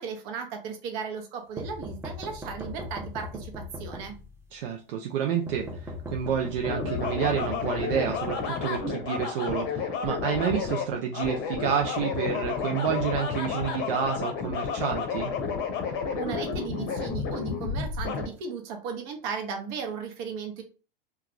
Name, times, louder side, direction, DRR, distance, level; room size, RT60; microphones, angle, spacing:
voice 1, 0.0-4.2 16.2-20.6, right 6 dB, 50° right, 3 dB, 0.9 m, -36 dB
sound 1, 1.6-4.5 5.5-8.8, left 1 dB, 10° right, 0.5 m, -39 dB
voice 2, 4.5-15.3, right 8 dB, 70° right, 3 dB, 0.5 m, -29 dB
sound 2, 6.6-18.3, left 5 dB, 35° left, 0.7 m, -31 dB
2.3 x 2.3 x 3.0 m, 0.35 s
hypercardioid pair, 100°, 29 cm